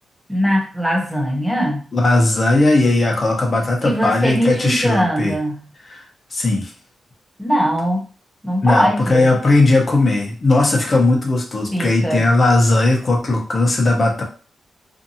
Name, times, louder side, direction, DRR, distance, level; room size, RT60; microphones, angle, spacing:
voice 1, 0.3-1.9 3.8-5.6 7.4-8.0 8.4-9.3 11.7-12.2, equal, ahead, -1 dB, 0.7 m, -20 dB
voice 2, 1.9-5.3 5.9-6.0 6.3-6.7 8.6-14.2, left 2 dB, 30° left, 0 dB, 0.7 m, -17 dB
2.7 x 2.6 x 2.7 m, 0.38 s
wide cardioid pair, 135°, 0 cm